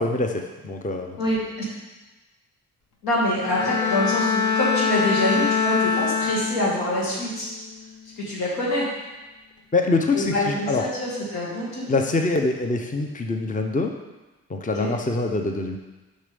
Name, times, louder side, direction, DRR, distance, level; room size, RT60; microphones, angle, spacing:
voice 1, 0.0-1.2 9.7-10.8 11.9-13.9 14.5-15.8, left 3 dB, 20° left, 4 dB, 0.8 m, -24 dB
voice 2, 1.2-1.7 3.0-7.5 8.2-8.9 10.1-11.9 14.8-14.9, left 1 dB, 80° left, -5 dB, 2.5 m, -25 dB
Bowed string instrument, 3.4-7.0 7.4-7.8, left 5 dB, 50° left, 1.1 m, -24 dB
6.6 x 5.5 x 5.3 m, 1.2 s
supercardioid pair, 55°, 36 cm